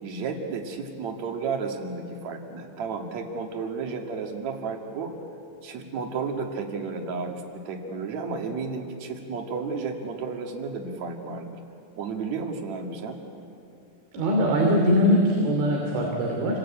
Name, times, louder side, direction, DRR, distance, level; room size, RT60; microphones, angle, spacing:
voice 1, 0.0-5.1 5.6-11.6 12.0-13.2, right 4 dB, 45° right, 3 dB, 2.9 m, -32 dB
voice 2, 14.1-16.6, equal, 80° right, 0 dB, 5.3 m, -22 dB
28.5 x 23.0 x 8.8 m, 2.6 s
omnidirectional pair, 5.3 m